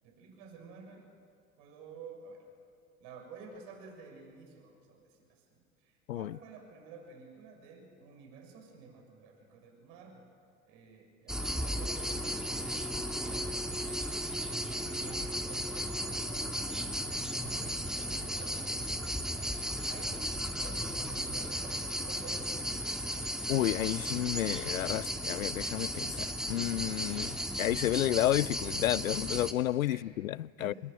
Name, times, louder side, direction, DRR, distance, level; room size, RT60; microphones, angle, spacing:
voice 1, 0.0-1.1 1.6-2.5 3.0-10.3 10.7-14.0 14.7-18.7 19.5-22.7 29.9-30.1 30.6-30.8, right 5 dB, 60° right, 6.7 m, -52 dB
sound 1, 11.3-29.5, equal, ahead, 2.0 m, -35 dB
voice 2, 23.5-30.7, left 14 dB, 80° left, 0.5 m, -31 dB
25.5 x 21.0 x 9.1 m
figure-of-eight pair, 75°, 40 cm